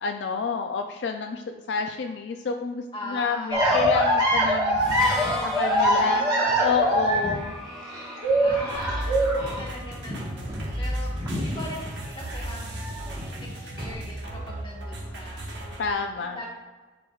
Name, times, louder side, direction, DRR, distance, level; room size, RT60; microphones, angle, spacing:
voice 1, 0.0-5.2 5.6-7.5 15.8-16.4, left 5 dB, 65° left, 5 dB, 0.4 m, -29 dB
voice 2, 2.9-4.0 5.1-6.0 8.4-13.2 13.5-15.7 16.1-16.5, left 1 dB, 25° left, -3 dB, 1.4 m, -41 dB
sound 1, 3.5-12.4 12.7-13.9, equal, 20° right, 1.2 m, -24 dB
Harmonica, 4.8-10.5, left 1 dB, 5° left, 0.9 m, -39 dB
sound 2, 8.7-15.9, right 1 dB, 65° right, 1.3 m, -35 dB
9.7 x 4.5 x 2.4 m, 1.3 s
head